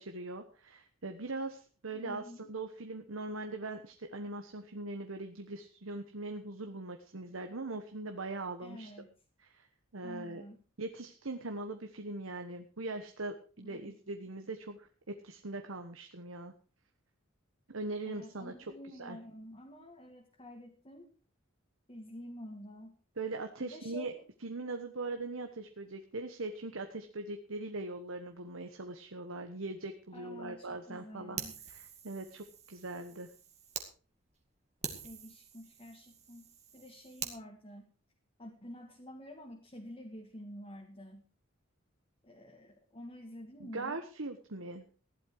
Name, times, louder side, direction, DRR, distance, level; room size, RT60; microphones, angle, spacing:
voice 1, 0.0-8.9 9.4-9.7 9.9-10.4 10.8-16.5 17.7-18.5 19.0-19.2 23.2-24.1 24.4-31.4 31.7-33.3 43.6-44.8, right 2 dB, 80° right, 6 dB, 1.3 m, -41 dB
voice 2, 1.9-2.4 8.6-9.1 10.0-10.6 13.6-13.9 18.1-21.1 21.9-22.9 23.6-24.2 30.1-31.5 35.0-37.9 38.4-41.3 42.2-44.0, left 1 dB, 25° left, 0 dB, 2.0 m, -49 dB
Fire, 31.4-33.9 34.3-34.4 34.8-37.4, right 7 dB, 35° right, 2.1 m, -45 dB
15.0 x 11.5 x 4.8 m, 0.39 s
head